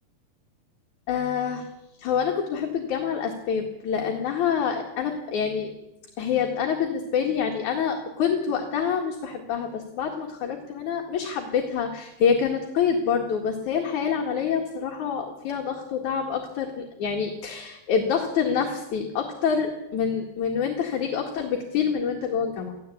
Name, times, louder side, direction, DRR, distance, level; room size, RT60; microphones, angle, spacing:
voice 1, 1.1-1.6 2.0-5.7 6.2-22.7, left 7 dB, 60° left, 2 dB, 3.1 m, -26 dB
24.5 x 15.5 x 8.5 m, 0.92 s
omnidirectional pair, 4.2 m